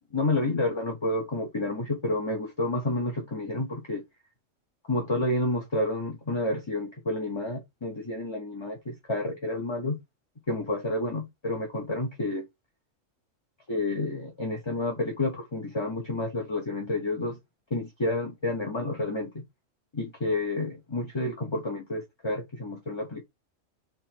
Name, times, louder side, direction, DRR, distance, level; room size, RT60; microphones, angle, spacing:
voice 1, 0.1-4.0 4.9-10.0 10.5-12.5 13.7-17.4 17.7-19.4 19.9-23.2, left 2 dB, 25° left, 0.9 m, -30 dB
3.9 x 2.9 x 4.4 m
omnidirectional pair, 1.3 m